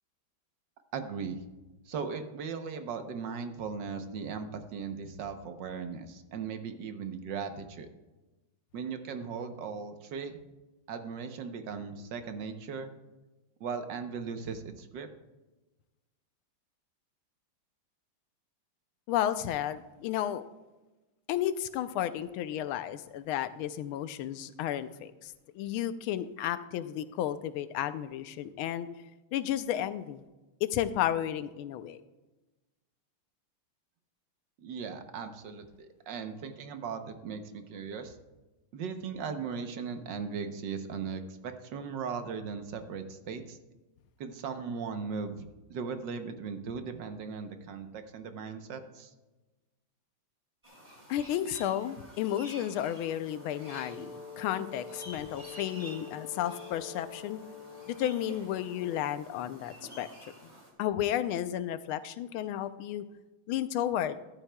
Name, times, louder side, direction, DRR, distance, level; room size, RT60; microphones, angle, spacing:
voice 1, 0.9-1.4 1.9-7.9 8.7-10.4 10.9-12.9 13.6-15.1 34.6-38.2 38.7-43.6 44.2-49.1, right 5 dB, 65° right, 7 dB, 1.4 m, -38 dB
voice 2, 19.1-20.4 21.3-28.9 29.3-30.2 30.6-32.0 51.1-57.4 57.9-60.1 60.8-63.0 63.5-64.2, left 11 dB, 90° left, 12 dB, 1.5 m, -32 dB
sound 1, 50.6-60.7, right 1 dB, 20° right, 2.3 m, -51 dB
Brass instrument, 53.4-59.4, left 6 dB, 45° left, 0.6 m, -47 dB
14.0 x 11.5 x 2.3 m, 1.1 s
omnidirectional pair, 2.3 m